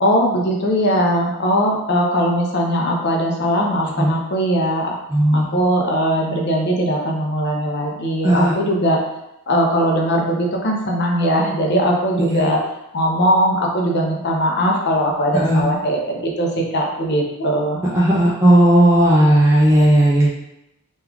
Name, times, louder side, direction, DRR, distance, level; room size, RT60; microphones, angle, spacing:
voice 1, 0.0-5.0 5.3-9.0 9.5-12.6 12.9-17.8, equal, 50° left, 0 dB, 0.6 m, -20 dB
voice 2, 5.1-5.6 8.2-8.5 12.2-12.5 15.4-15.6 17.9-20.3, right 1 dB, 15° right, -7 dB, 0.4 m, -14 dB
3.1 x 2.3 x 3.4 m, 0.87 s
head